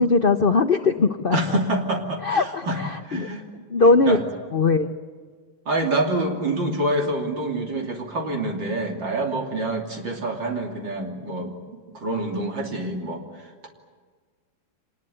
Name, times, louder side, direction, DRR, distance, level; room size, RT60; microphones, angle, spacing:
voice 1, 0.0-1.4 2.2-3.3 3.7-4.2 4.5-4.9, left 3 dB, 60° left, 8 dB, 0.5 m, -20 dB
voice 2, 1.3-3.4 4.1-4.2 5.7-11.6 11.9-13.7, right 2 dB, 65° right, 2 dB, 3.7 m, -27 dB
26.0 x 20.0 x 9.3 m, 1.5 s
omnidirectional pair, 2.2 m